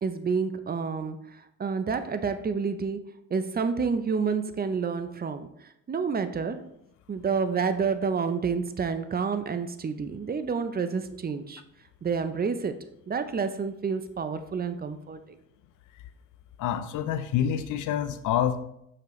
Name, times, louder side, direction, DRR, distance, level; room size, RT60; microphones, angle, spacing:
voice 1, 0.0-3.0 3.3-5.5 5.9-6.6 7.1-11.6 12.0-12.7 13.1-15.2, right 5 dB, 30° right, 11 dB, 0.6 m, -29 dB
voice 2, 16.6-18.6, left 10 dB, 85° left, 11 dB, 0.6 m, -27 dB
6.6 x 5.8 x 3.1 m, 0.78 s
cardioid pair, 90°, 30 cm